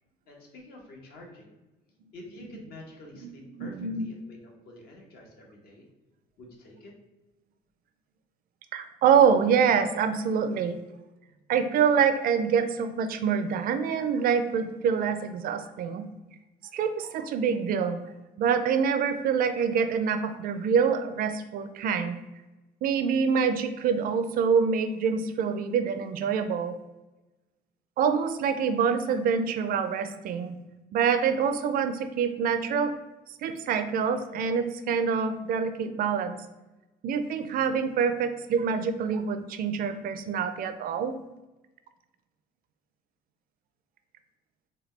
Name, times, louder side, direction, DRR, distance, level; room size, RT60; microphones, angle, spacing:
voice 1, 0.3-1.5 2.1-4.4 4.6-5.8 6.4-6.9, left 1 dB, 65° left, 0 dB, 1.0 m, -48 dB
voice 2, 3.6-4.1 8.7-10.8 11.5-16.1 16.7-18.0 18.4-22.2 22.8-26.7 28.0-30.6 30.9-32.9 33.4-36.4 37.0-41.1, right 6 dB, 60° right, 9 dB, 0.4 m, -26 dB
4.2 x 2.2 x 3.2 m, 1.1 s
cardioid pair, 110°, 17 cm